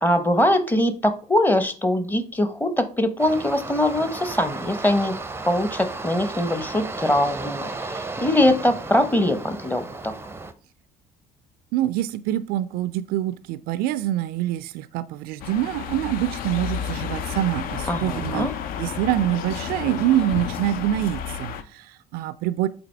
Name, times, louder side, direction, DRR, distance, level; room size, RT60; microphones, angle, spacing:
voice 1, 0.0-10.1 17.9-18.5, left 1 dB, 10° left, 10 dB, 0.9 m, -22 dB
sound 1, 3.2-10.5, right 3 dB, 15° right, 0.6 m, -34 dB
voice 2, 11.7-18.5 18.8-22.7, right 13 dB, 55° right, 15 dB, 0.4 m, -25 dB
sound 2, 15.4-21.6, left 8 dB, 50° left, 0.6 m, -31 dB
7.9 x 4.0 x 3.3 m, 0.39 s
figure-of-eight pair, 55°, 18 cm